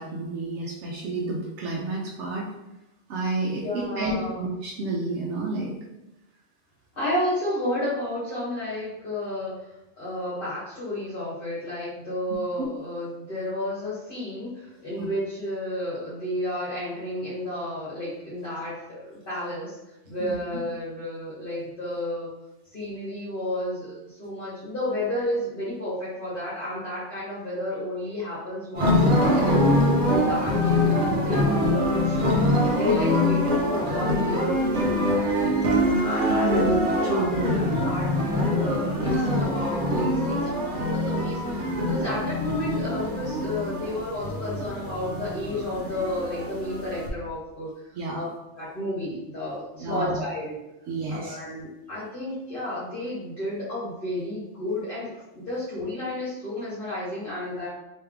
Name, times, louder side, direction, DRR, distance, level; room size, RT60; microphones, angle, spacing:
voice 1, 0.0-2.5 3.1-5.8 12.6-12.7 15.0-15.1 20.3-20.4 36.3-37.4 47.9-48.3 49.8-50.2 50.9-51.4, right 2 dB, 85° right, -2 dB, 0.9 m, -29 dB
voice 2, 3.6-4.4 6.9-9.7 10.0-19.8 20.0-22.3 22.7-29.7 30.1-30.8 31.2-35.6 36.0-47.7 48.1-48.2 48.6-50.5 51.1-57.7, left 1 dB, 50° left, -10 dB, 1.3 m, -31 dB
sound 1, 28.7-47.1, left 1 dB, 50° right, 0.8 m, -24 dB
3.3 x 2.8 x 3.5 m, 0.97 s
omnidirectional pair, 1.2 m